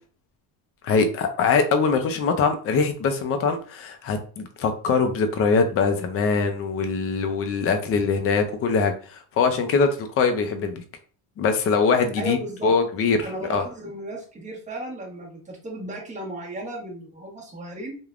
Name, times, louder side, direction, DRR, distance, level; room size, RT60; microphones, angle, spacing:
voice 1, 0.8-10.8 11.4-12.4 12.6-13.6, left 5 dB, 40° left, 7 dB, 0.5 m, -22 dB
voice 2, 12.2-12.7 13.2-18.0, right 1 dB, 20° right, -2 dB, 1.0 m, -35 dB
3.3 x 2.2 x 2.4 m, 0.41 s
cardioid pair, 130°, 38 cm